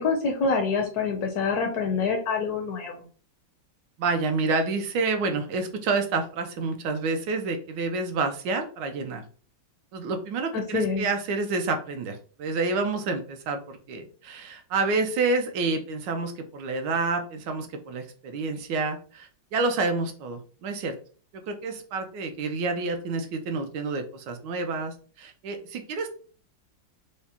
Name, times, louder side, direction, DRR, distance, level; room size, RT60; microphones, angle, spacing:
voice 1, 0.0-2.9 10.5-11.1, left 4 dB, 70° left, 3 dB, 1.0 m, -26 dB
voice 2, 4.0-9.2 9.9-20.9 21.5-26.1, right 3 dB, 75° right, 6 dB, 1.2 m, -28 dB
4.9 x 2.1 x 2.8 m, 0.42 s
omnidirectional pair, 2.0 m